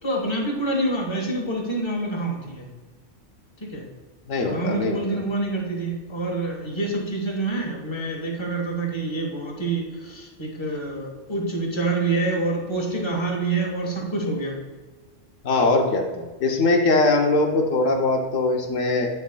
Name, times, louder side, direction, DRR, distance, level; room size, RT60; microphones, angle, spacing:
voice 1, 0.0-2.7 3.6-3.8 4.4-14.6, right 2 dB, 25° left, -1 dB, 1.2 m, -27 dB
voice 2, 4.3-5.0 15.4-16.0 16.4-19.1, left 2 dB, 80° left, 2 dB, 1.2 m, -21 dB
9.0 x 6.4 x 2.2 m, 1.2 s
omnidirectional pair, 1.3 m